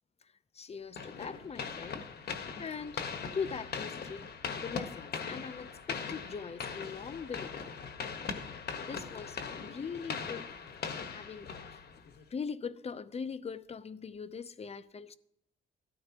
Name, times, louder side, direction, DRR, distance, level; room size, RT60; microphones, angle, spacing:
voice 1, 0.5-2.1 2.6-3.1 3.3-4.2 4.6-7.6 8.8-10.6 11.1-11.8 12.3-15.1, left 6 dB, 30° left, 0.7 m, -41 dB
sound 1, 1.0-12.2, left 5 dB, 55° left, 1.3 m, -40 dB
17.0 x 13.0 x 3.0 m
cardioid pair, 90°, 20 cm